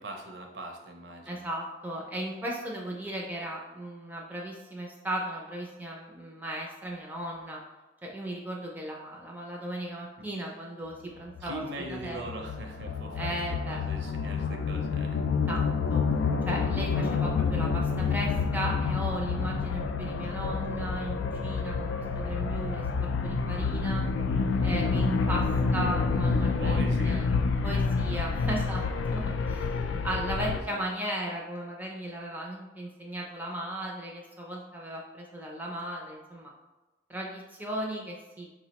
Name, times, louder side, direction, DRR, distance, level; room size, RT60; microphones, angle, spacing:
voice 1, 0.0-1.4 10.2-10.3 11.4-13.4 13.6-15.2 26.6-27.2 30.4-30.8, right 1 dB, 70° right, 2 dB, 0.6 m, -41 dB
voice 2, 1.3-7.6 8.0-12.3 13.2-13.8 15.5-16.0 16.5-21.9 22.2-24.0 24.6-25.4 25.7-27.3 27.6-36.5 37.1-38.5, right 1 dB, 10° right, -2 dB, 0.4 m, -36 dB
sound 1, 11.4-30.6, left 4 dB, 90° left, 0.3 m, -28 dB
4.4 x 2.1 x 2.8 m, 1.1 s
head